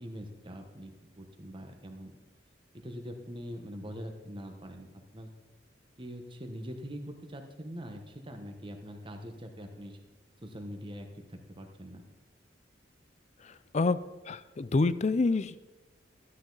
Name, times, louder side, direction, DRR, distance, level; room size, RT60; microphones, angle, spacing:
voice 1, 0.0-2.1 2.7-5.3 6.0-10.0 10.4-12.0, equal, 25° right, 5 dB, 1.2 m, -43 dB
voice 2, 13.4-14.0 14.2-15.7, left 3 dB, 40° left, 15 dB, 0.4 m, -28 dB
13.5 x 9.8 x 4.0 m, 1.1 s
head